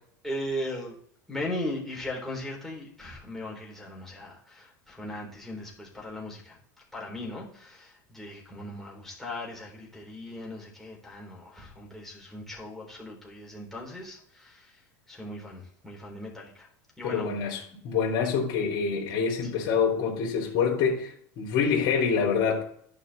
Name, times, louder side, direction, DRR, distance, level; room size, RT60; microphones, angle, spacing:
voice 1, 0.2-1.0 1.3-6.6 6.9-16.7 17.0-17.4 19.6-19.7, left 1 dB, 5° left, 3.9 m, -38 dB
voice 2, 17.0-22.6, left 6 dB, 55° left, 3.7 m, -26 dB
11.5 x 5.2 x 4.3 m
supercardioid pair, 115°, 10 cm